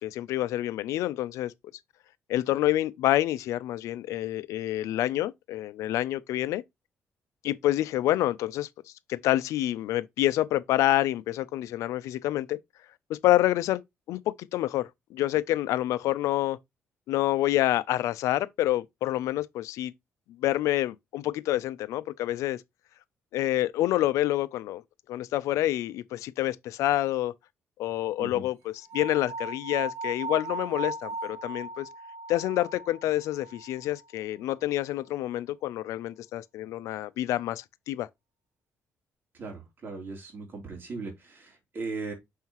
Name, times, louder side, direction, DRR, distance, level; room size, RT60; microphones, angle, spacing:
voice 1, 0.0-1.5 2.3-6.6 7.4-8.7 9.1-12.6 13.1-13.8 14.1-16.6 17.1-19.9 20.4-22.6 23.3-24.8 25.1-27.3 27.8-31.9 32.3-38.1, left 14 dB, 90° left, 0.5 m, -27 dB
sound 1, 28.9-34.0, right 2 dB, 85° right, 1.0 m, -37 dB
voice 2, 39.4-42.1, right 4 dB, 45° right, 3.2 m, -38 dB
6.4 x 5.6 x 3.0 m
cardioid pair, 110°, 5 cm